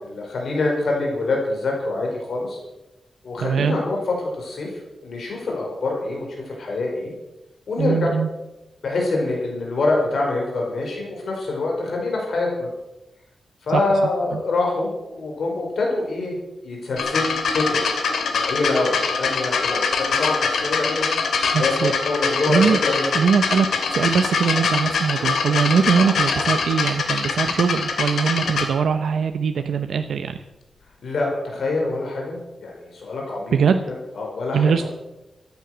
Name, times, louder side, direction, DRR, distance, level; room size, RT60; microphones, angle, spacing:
voice 1, 0.0-2.6 3.2-4.0 4.3-7.1 7.7-8.1 8.8-12.7 13.6-16.3 16.6-17.8 18.1-21.1 21.6-23.1 25.9-26.1 31.0-33.5 34.1-34.9, left 2 dB, 60° left, -1 dB, 5.0 m, -25 dB
voice 2, 3.4-3.8 7.8-8.3 13.7-13.8 14.3-14.4 21.5-21.9 22.5-22.8 23.1-30.4 33.5-33.8 34.5-34.9, right 6 dB, 90° right, 7 dB, 0.8 m, -21 dB
sound 1, 17.0-28.7 29.6-29.7, left 5 dB, 80° left, 2.5 m, -23 dB
14.5 x 10.5 x 7.9 m, 0.97 s
wide cardioid pair, 160°, 0 cm